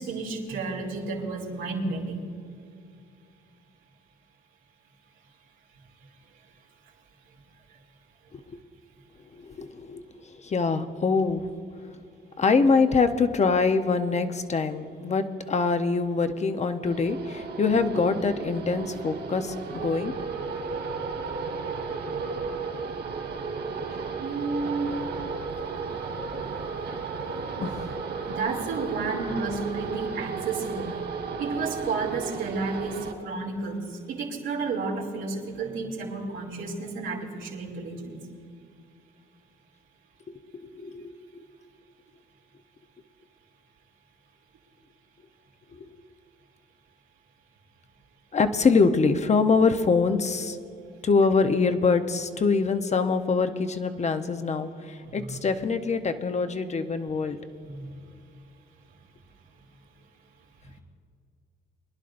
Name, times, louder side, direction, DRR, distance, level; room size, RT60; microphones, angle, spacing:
voice 1, 0.0-2.2 24.0-25.0 28.3-31.0 31.4-38.2 55.0-55.4 57.6-57.9, right 3 dB, 85° right, -2 dB, 2.7 m, -32 dB
voice 2, 9.4-11.5 12.4-20.1 27.6-27.9 40.5-41.2 45.7-45.9 48.3-50.6 51.0-57.4, left 4 dB, 35° left, 9 dB, 0.8 m, -24 dB
sound 1, 16.9-33.1, right 5 dB, 65° right, 2.8 m, -34 dB
24.0 x 11.0 x 2.6 m, 2.4 s
cardioid pair, 90°, 20 cm